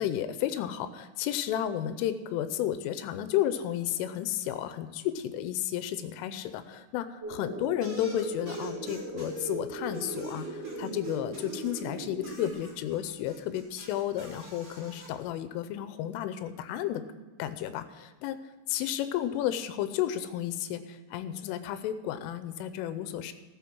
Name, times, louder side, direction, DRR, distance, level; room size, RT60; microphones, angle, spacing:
voice 1, 0.0-17.0 17.4-18.4 18.7-23.3, left 11 dB, 85° left, 11 dB, 3.3 m, -32 dB
sound 1, 7.2-12.5, right 2 dB, 75° right, 1.8 m, -38 dB
sound 2, 7.8-9.5 9.9-11.8 12.2-15.1, right 1 dB, 30° right, 1.3 m, -50 dB
14.5 x 7.9 x 6.1 m, 1.3 s
omnidirectional pair, 5.6 m